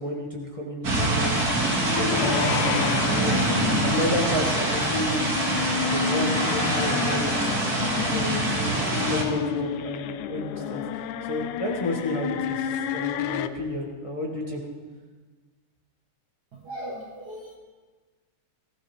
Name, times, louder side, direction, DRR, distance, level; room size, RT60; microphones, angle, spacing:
voice 1, 0.0-1.3 1.9-3.4 3.8-5.6 5.9-7.5 8.1-14.6, left 1 dB, 15° left, -3 dB, 1.3 m, -31 dB
sound 1, 0.8-9.2, right 2 dB, 30° right, 2.1 m, -25 dB
sound 2, 1.7-13.5, left 10 dB, 80° left, 1.7 m, -30 dB
voice 2, 16.5-17.6, equal, 80° right, -1 dB, 0.9 m, -38 dB
20.0 x 15.0 x 3.5 m, 1.3 s
omnidirectional pair, 4.0 m